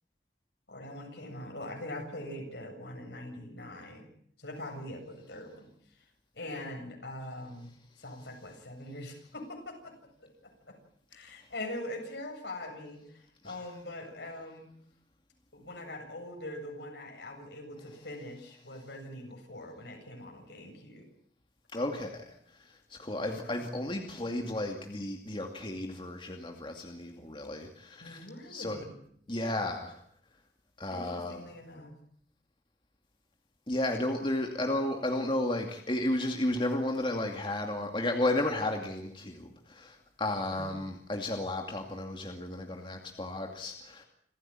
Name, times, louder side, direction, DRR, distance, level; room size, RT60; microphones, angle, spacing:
voice 1, 0.7-4.1 4.4-5.7 6.3-9.9 10.7-10.8 11.1-14.7 15.5-21.1 23.2-23.6 28.0-29.0 30.9-32.0 40.5-40.8, left 1 dB, 75° left, 3 dB, 7.7 m, -43 dB
voice 2, 21.7-22.2 22.9-28.2 28.5-28.8 29.3-30.0 30.8-31.4 33.7-44.0, left 1 dB, 30° left, 3 dB, 2.4 m, -33 dB
27.5 x 15.5 x 9.0 m, 0.66 s
head